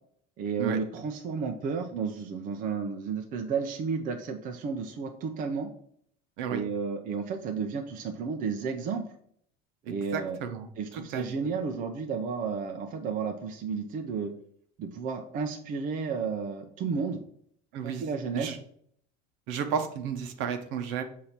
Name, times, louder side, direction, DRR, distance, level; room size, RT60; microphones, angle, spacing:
voice 1, 0.4-5.7 6.5-9.0 9.9-10.4 10.8-14.3 14.8-17.2 17.8-18.5, right 5 dB, 40° right, 4 dB, 0.7 m, -32 dB
voice 2, 9.8-11.2 17.7-18.1 18.3-18.6 19.5-21.0, right 7 dB, 65° right, 6 dB, 0.9 m, -33 dB
6.6 x 2.8 x 5.7 m, 0.64 s
cardioid pair, 135°, 21 cm